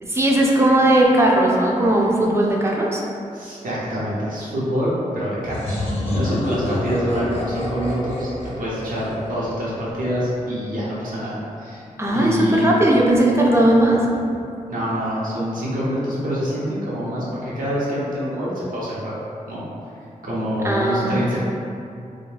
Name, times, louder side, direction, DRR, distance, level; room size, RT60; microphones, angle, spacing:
voice 1, 0.0-3.0 12.0-14.1 20.6-21.4, right 1 dB, 20° right, -3 dB, 0.5 m, -17 dB
voice 2, 3.3-11.8 12.1-12.7 14.7-19.7 20.2-21.4, equal, 75° right, -8 dB, 0.9 m, -26 dB
sound 1, 5.5-10.0, left 1 dB, 45° left, 0.7 m, -27 dB
2.3 x 2.2 x 3.2 m, 2.6 s
cardioid pair, 60°, 14 cm